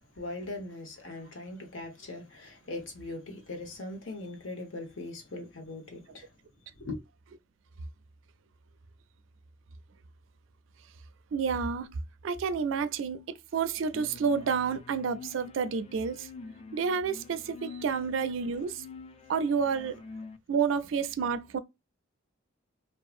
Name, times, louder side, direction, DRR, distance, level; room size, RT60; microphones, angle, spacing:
voice 1, 0.0-6.3 6.8-7.0, left 2 dB, 70° left, 1.0 m, -40 dB
voice 2, 11.3-11.9 12.2-13.3 13.5-16.3 16.7-18.8 19.3-20.0 20.5-21.6, right 6 dB, 70° right, 0.4 m, -29 dB
sound 1, 13.9-20.4, left 4 dB, 30° left, 0.3 m, -47 dB
2.7 x 2.3 x 2.3 m
head